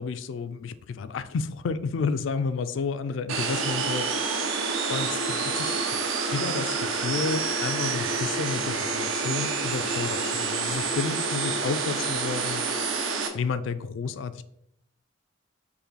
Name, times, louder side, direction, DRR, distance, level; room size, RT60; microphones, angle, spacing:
voice 1, 0.0-4.0 4.9-5.8 6.3-12.6 13.3-14.4, left 5 dB, 65° left, 12 dB, 0.3 m, -31 dB
sound 1, 3.3-13.3, right 4 dB, 85° right, 0.7 m, -28 dB
5.5 x 2.2 x 4.0 m, 0.76 s
head